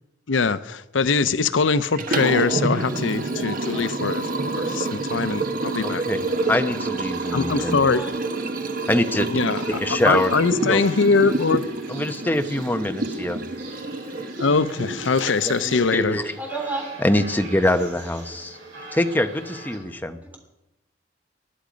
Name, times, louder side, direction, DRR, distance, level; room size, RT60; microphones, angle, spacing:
voice 1, 0.3-6.1 7.3-8.1 9.3-11.6 14.4-16.2, left 4 dB, 85° left, 0.7 m, -22 dB
Liquid, 1.8-15.9, right 2 dB, 50° right, 1.2 m, -28 dB
voice 2, 5.8-6.2 6.5-7.8 8.9-9.3 9.8-10.3 10.7-10.8 11.9-13.4 15.4-16.3 17.0-18.6 18.9-20.2, left 1 dB, 10° left, 0.9 m, -24 dB
sound 1, 6.1-19.8, right 2 dB, 75° right, 7.3 m, -42 dB
voice 3, 7.4-8.2 9.4-9.8 16.4-17.2, right 2 dB, 10° right, 3.2 m, -33 dB
20.0 x 12.0 x 5.2 m
head